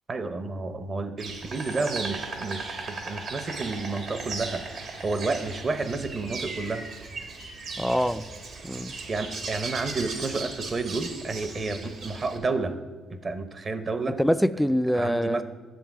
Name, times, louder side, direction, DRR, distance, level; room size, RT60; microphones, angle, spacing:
voice 1, 0.1-4.6 5.0-6.8 9.1-12.8 13.1-14.2 14.9-15.4, right 3 dB, 40° right, 0.8 m, -30 dB
Insect, 1.2-12.4, right 3 dB, 65° right, 1.5 m, -37 dB
voice 2, 7.8-8.3 8.6-9.0 14.1-15.4, equal, ahead, 0.3 m, -24 dB
10.5 x 7.1 x 4.7 m
cardioid pair, 85°, 0 cm